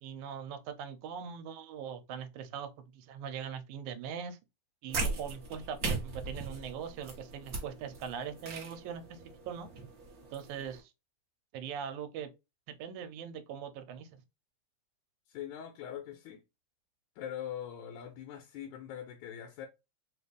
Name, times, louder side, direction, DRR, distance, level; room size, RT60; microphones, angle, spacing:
voice 1, 0.0-4.4 4.8-9.2 9.5-9.7 10.3-10.9 11.5-12.3 12.8-14.1, right 7 dB, 85° right, 2.0 m, -41 dB
sound 1, 4.9-10.8, right 3 dB, 55° right, 1.0 m, -39 dB
voice 2, 15.3-16.4 17.2-19.7, left 10 dB, 80° left, 2.0 m, -42 dB
4.7 x 2.4 x 3.3 m
omnidirectional pair, 3.3 m